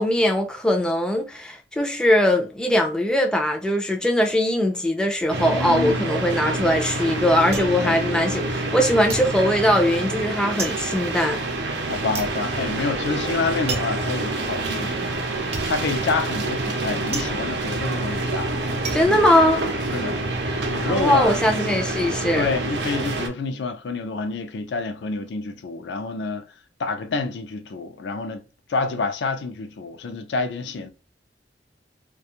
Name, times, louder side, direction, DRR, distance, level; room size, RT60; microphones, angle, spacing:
voice 1, 0.0-11.4 18.9-19.7 20.9-22.5, left 1 dB, 5° left, 0.3 m, -21 dB
sound 1, 5.3-23.3, right 2 dB, 80° right, 0.6 m, -27 dB
voice 2, 5.4-6.1 7.8-8.0 11.8-15.3 15.7-18.5 19.0-19.2 19.9-20.2 20.7-21.7 22.3-26.4 26.8-28.4 28.7-30.9, left 3 dB, 80° left, 0.4 m, -28 dB
sound 2, 7.5-8.8 9.1-20.2 20.5-21.1, right 4 dB, 35° right, 0.6 m, -36 dB
2.4 x 2.2 x 2.8 m
head